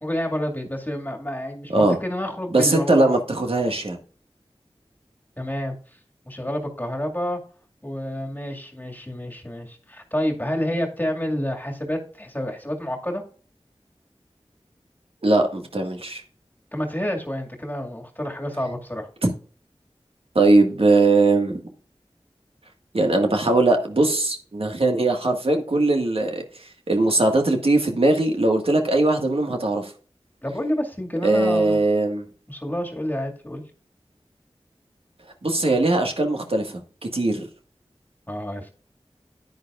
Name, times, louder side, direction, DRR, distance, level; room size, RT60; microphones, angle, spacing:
voice 1, 0.0-3.1 5.4-5.7 6.3-7.4 7.8-13.2 16.7-19.1 30.4-31.8 32.5-33.6 38.3-38.7, equal, 15° left, 1 dB, 2.1 m, -29 dB
voice 2, 2.5-4.0 15.2-16.2 19.2-19.3 20.4-21.6 22.9-26.4 26.9-29.9 31.2-32.3 35.4-37.5, right 2 dB, 65° right, 3 dB, 1.8 m, -20 dB
10.0 x 9.7 x 2.5 m, 0.41 s
wide cardioid pair, 50°, 11 cm